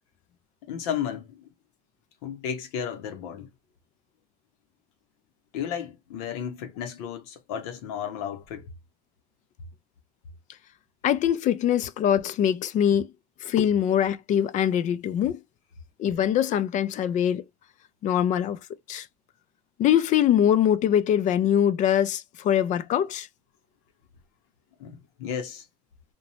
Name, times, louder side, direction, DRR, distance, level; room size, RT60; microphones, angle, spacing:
voice 1, 0.7-1.5 2.2-3.5 5.5-8.7 24.8-25.6, left 8 dB, 80° left, 0.8 m, -33 dB
voice 2, 11.0-13.1 13.4-15.4 16.0-17.4 18.0-18.6 18.9-19.1 19.8-23.3, left 10 dB, 40° left, 0.4 m, -23 dB
2.8 x 2.2 x 2.8 m
supercardioid pair, 115°, 19 cm